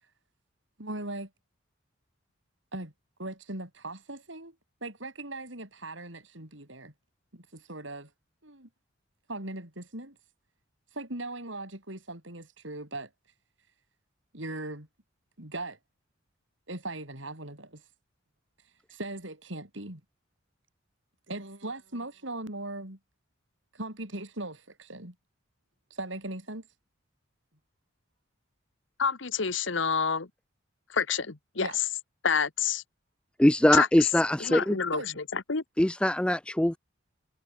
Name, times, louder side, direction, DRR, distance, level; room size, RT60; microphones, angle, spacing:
voice 1, 0.8-1.3 2.7-2.9 3.2-4.5 4.8-6.9 7.3-8.1 8.4-8.7 9.3-10.2 10.9-13.1 14.3-14.9 15.4-15.8 16.7-17.8 18.9-20.0 21.3-23.0 23.7-25.1 25.9-26.7 31.6-31.8 34.9-35.2, right 2 dB, 70° right, 6.2 m, -39 dB
voice 2, 29.0-30.3 30.9-31.7 32.2-32.8 33.7-33.9 34.4-35.6, left 6 dB, 70° left, 1.2 m, -28 dB
voice 3, 33.4-34.8 35.8-36.8, left 1 dB, 5° left, 0.4 m, -22 dB
head